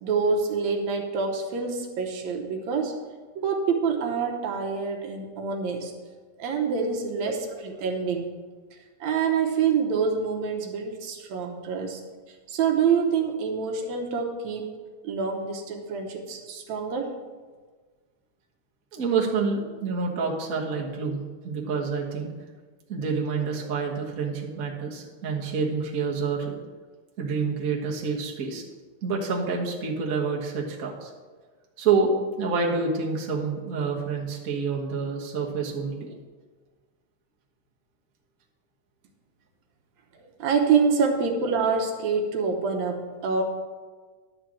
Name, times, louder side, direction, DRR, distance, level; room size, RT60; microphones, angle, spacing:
voice 1, 0.0-3.0 3.4-6.0 6.4-8.4 8.7-12.0 12.5-14.7 15.0-17.1 40.4-43.4, right 5 dB, 70° right, 3 dB, 2.1 m, -26 dB
voice 2, 18.9-22.3 22.9-26.5 27.2-28.6 29.0-31.1 31.8-32.1 32.4-36.1, right 5 dB, 45° right, -2 dB, 1.2 m, -28 dB
11.5 x 4.6 x 7.6 m, 1.4 s
omnidirectional pair, 3.4 m